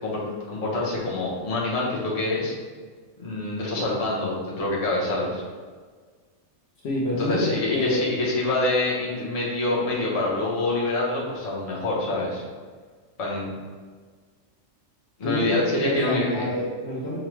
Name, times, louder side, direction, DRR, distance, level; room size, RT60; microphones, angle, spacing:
voice 1, 0.0-2.6 3.2-5.4 7.2-12.4 13.2-13.5 15.2-16.4, left 2 dB, 35° left, -5 dB, 0.8 m, -26 dB
voice 2, 6.8-8.0 15.2-17.2, left 1 dB, 60° left, -5 dB, 0.8 m, -27 dB
5.2 x 2.2 x 3.1 m, 1.5 s
omnidirectional pair, 1.3 m